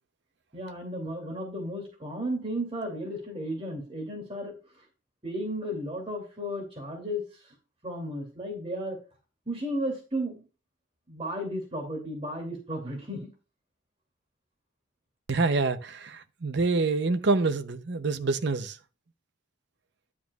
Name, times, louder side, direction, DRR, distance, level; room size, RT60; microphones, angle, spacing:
voice 1, 0.5-4.5 5.2-7.5 7.8-9.0 9.5-10.4 11.1-13.3, equal, 30° right, 2.5 m, -34 dB
voice 2, 15.3-18.8, right 3 dB, 60° right, 0.7 m, -26 dB
10.0 x 8.5 x 2.3 m
head